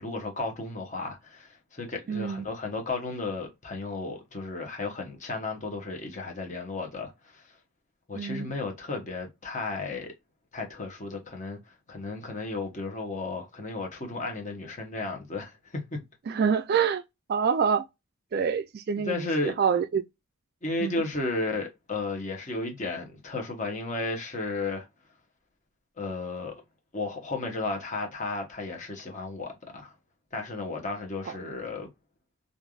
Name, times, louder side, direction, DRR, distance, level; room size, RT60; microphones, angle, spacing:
voice 1, 0.0-7.4 8.1-10.1 10.5-11.6 11.9-16.0 19.0-19.5 20.6-24.9 26.0-26.5 26.9-29.9 30.3-31.9, left 3 dB, 35° left, 0.9 m, -34 dB
voice 2, 2.1-2.5 8.2-8.5 16.3-17.0 17.3-17.8 18.3-20.0 20.8-21.0, right 6 dB, 45° right, 0.3 m, -26 dB
3.3 x 2.5 x 2.3 m
head